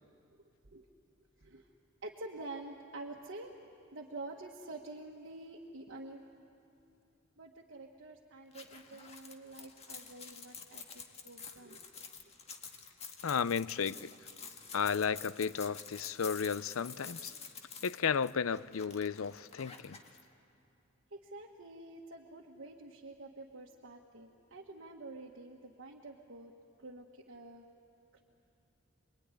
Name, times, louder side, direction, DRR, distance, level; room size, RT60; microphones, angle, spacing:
voice 1, 0.3-0.9 1.4-1.7 2.0-3.5 3.9-6.2 7.4-11.8 21.1-26.5 26.8-27.6, right 2 dB, 65° right, 1.6 m, -48 dB
sound 1, 8.5-20.2, left 6 dB, 30° left, 1.8 m, -49 dB
voice 2, 13.2-14.1 14.7-17.3 17.8-20.0, left 6 dB, 85° left, 0.5 m, -33 dB
27.0 x 22.0 x 9.9 m
head